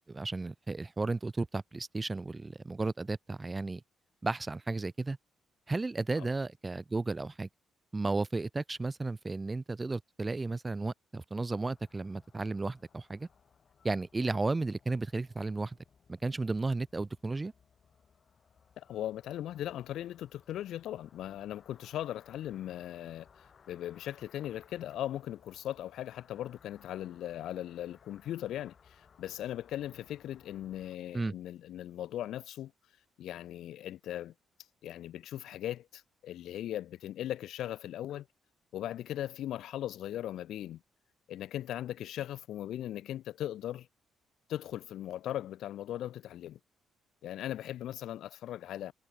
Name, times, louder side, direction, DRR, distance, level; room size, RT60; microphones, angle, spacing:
voice 1, 0.0-3.8 4.2-5.2 5.7-7.5 7.9-13.3 13.8-15.8 16.1-17.5 31.1-31.3, right 3 dB, 20° right, 1.7 m, -34 dB
sound 1, 11.7-31.0, left 6 dB, 45° left, 7.1 m, -63 dB
voice 2, 18.8-23.3 23.7-32.7 33.2-34.3 34.8-38.3 38.7-40.8 41.3-43.9 44.5-46.6 47.2-48.9, left 12 dB, 80° left, 2.3 m, -39 dB
cardioid pair, 90°, 0 cm